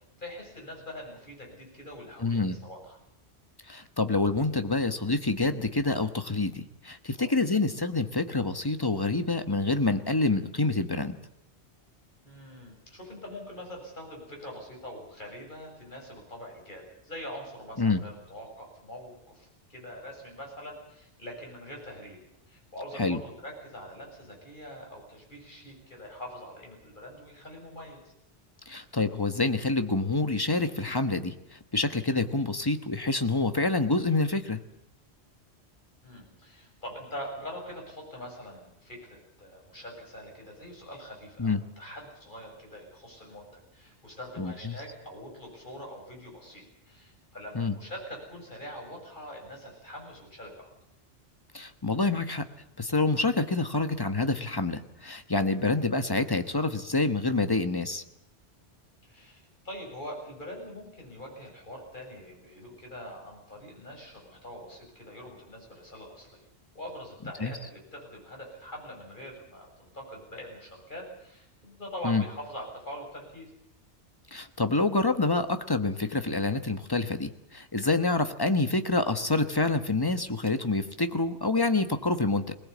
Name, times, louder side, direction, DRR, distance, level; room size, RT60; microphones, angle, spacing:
voice 1, 0.2-3.0 7.2-7.3 12.2-22.2 22.5-28.1 36.0-43.5 43.7-50.7 59.0-66.5 66.7-73.5, equal, 45° left, 0 dB, 7.7 m, -43 dB
voice 2, 2.2-2.6 3.7-11.2 17.8-18.0 23.0-23.2 28.7-34.6 41.4-41.6 44.4-44.8 47.5-47.7 51.5-52.5 52.8-58.0 67.4-67.5 72.0-72.2 74.3-82.5, left 3 dB, 20° left, 9 dB, 1.2 m, -27 dB
21.5 x 19.5 x 8.5 m, 0.79 s
omnidirectional pair, 1.2 m